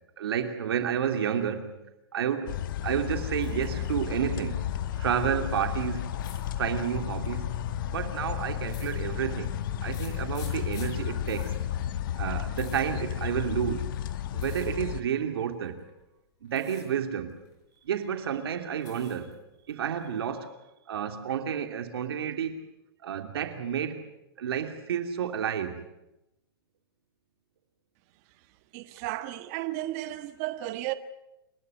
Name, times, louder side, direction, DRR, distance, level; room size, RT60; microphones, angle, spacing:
voice 1, 0.2-1.8 2.1-2.6 2.8-4.6 5.0-6.1 6.6-7.5 7.9-9.5 9.8-11.5 12.2-13.9 14.3-15.8 16.4-17.4 17.8-19.3 19.7-20.5 20.9-22.6 23.0-24.0 24.4-25.8, right 8 dB, 75° right, 2.8 m, -30 dB
sound 1, 2.5-15.0, left 11 dB, 55° left, 1.3 m, -33 dB
sound 2, 3.4-3.9 4.3-4.9 6.2-6.5 7.4-7.7 8.6-9.4 9.9-13.7 14.4-14.7 15.6-16.0 16.4-16.9 17.2-18.0 18.4-19.3 19.7-20.4, left 7 dB, 30° left, 5.7 m, -52 dB
voice 2, 28.7-30.9, right 16 dB, 40° right, 1.5 m, -33 dB
28.5 x 13.0 x 9.5 m
hypercardioid pair, 150°, 13 cm